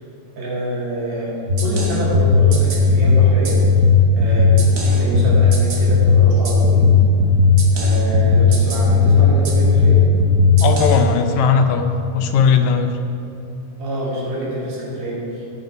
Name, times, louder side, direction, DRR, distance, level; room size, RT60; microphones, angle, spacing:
voice 1, 0.4-1.3 1.6-3.6 4.1-6.9 7.7-10.0 13.8-15.4, right 1 dB, 65° right, -8 dB, 3.8 m, -26 dB
sound 1, 1.5-11.0, left 4 dB, 50° right, 1.3 m, -15 dB
voice 2, 10.6-11.9 12.1-13.0, left 6 dB, 80° left, 6 dB, 2.0 m, -17 dB
15.5 x 5.3 x 4.8 m, 2.7 s
omnidirectional pair, 3.4 m